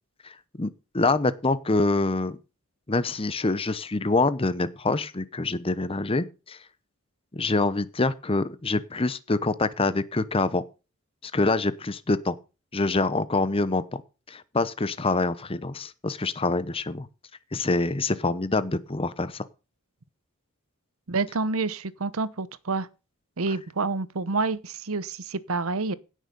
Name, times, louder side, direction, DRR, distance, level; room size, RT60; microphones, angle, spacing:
voice 1, 0.2-2.4 2.9-6.6 7.3-10.6 11.2-12.3 12.7-14.0 14.3-17.1 17.5-19.4, left 3 dB, 25° left, 0.8 m, -26 dB
voice 2, 21.1-22.9 23.4-25.9, right 3 dB, 70° right, 0.9 m, -28 dB
16.5 x 6.5 x 5.3 m
head